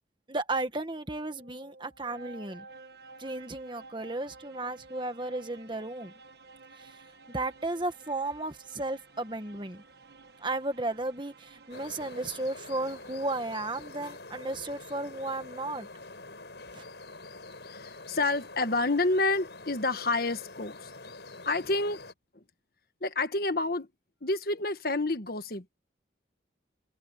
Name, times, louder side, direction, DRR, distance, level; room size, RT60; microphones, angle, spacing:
voice 1, 0.3-2.7 3.2-6.1 6.7-9.8 10.4-15.9 16.7-16.8, right 2 dB, 25° right, 1.6 m, -34 dB
sound 1, 0.9-13.7, right 3 dB, 60° right, 1.5 m, -53 dB
sound 2, 11.7-22.1, left 3 dB, 70° left, 5.8 m, -46 dB
voice 2, 17.7-20.9 21.4-22.0 22.3-22.4 23.0-23.9 24.2-25.7, left 2 dB, 55° left, 1.4 m, -29 dB
head